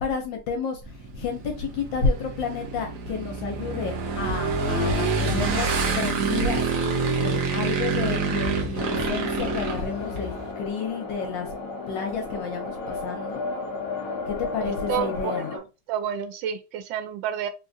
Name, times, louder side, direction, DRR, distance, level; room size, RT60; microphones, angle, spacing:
voice 1, 0.0-6.7 7.2-11.5 11.9-13.4 14.3-15.5, left 5 dB, 75° left, 1.3 m, -30 dB
Motorcycle / Engine, 0.8-10.5, right 4 dB, 60° right, 0.9 m, -27 dB
sound 1, 8.8-15.6, left 3 dB, 50° left, 1.4 m, -33 dB
voice 2, 14.6-15.6 15.9-17.5, right 9 dB, 80° right, 1.3 m, -30 dB
3.6 x 2.4 x 2.6 m
omnidirectional pair, 2.1 m